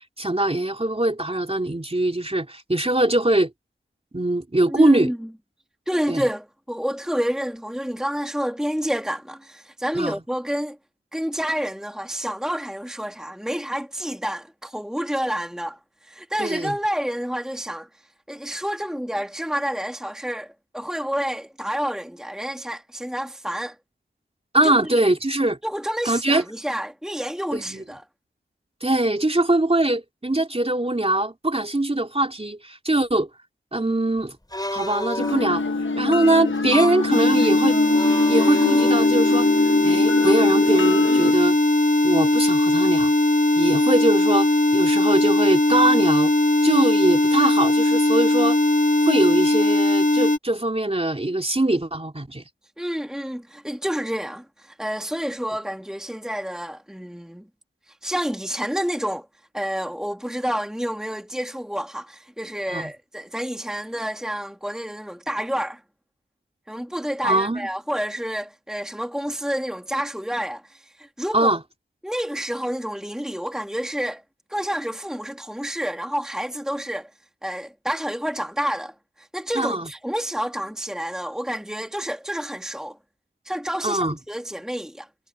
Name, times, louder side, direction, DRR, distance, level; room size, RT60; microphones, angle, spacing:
voice 1, 0.2-3.5 4.1-5.1 6.1-6.3 9.9-10.2 16.4-16.8 24.5-25.6 26.0-26.4 27.5-27.8 28.8-33.3 33.7-34.4 34.7-35.6 36.0-37.8 38.3-39.5 39.8-41.6 42.0-43.1 43.6-46.3 46.6-48.6 49.0-52.4 62.7-62.9 67.2-67.7 71.3-71.6 79.5-79.9 83.8-84.2, right 1 dB, 30° right, 3.0 m, -22 dB
voice 2, 4.7-5.2 5.9-10.8 11.1-17.9 18.3-23.8 24.6-25.1 25.6-28.1 52.8-57.4 57.9-59.3 59.5-65.8 66.7-71.5 72.0-74.2 74.5-77.1 77.4-83.0 83.5-85.1, equal, 5° right, 1.7 m, -29 dB
sound 1, 34.5-35.5 36.5-37.1 37.9-39.3 40.2-40.3, left 1 dB, 20° left, 5.8 m, -31 dB
sound 2, 35.2-41.3, left 4 dB, 65° left, 1.2 m, -25 dB
sound 3, 37.1-50.4, left 2 dB, 40° left, 1.5 m, -19 dB
wide cardioid pair, 65°, 21 cm